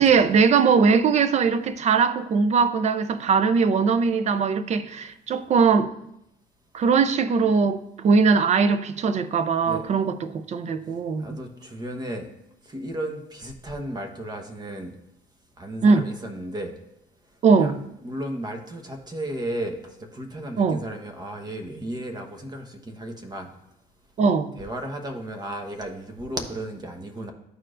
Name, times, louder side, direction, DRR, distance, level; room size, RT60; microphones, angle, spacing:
voice 1, 0.0-5.9 6.7-11.3 15.8-16.1 17.4-17.8 20.6-20.8 24.2-24.5, right 5 dB, 40° right, 0.5 m, -20 dB
voice 2, 11.2-12.3 12.6-14.9 15.6-16.7 17.5-17.7 18.0-23.5 24.6-27.3, right 1 dB, 25° right, 1.0 m, -34 dB
12.5 x 4.5 x 2.5 m
cardioid pair, 110°, 17 cm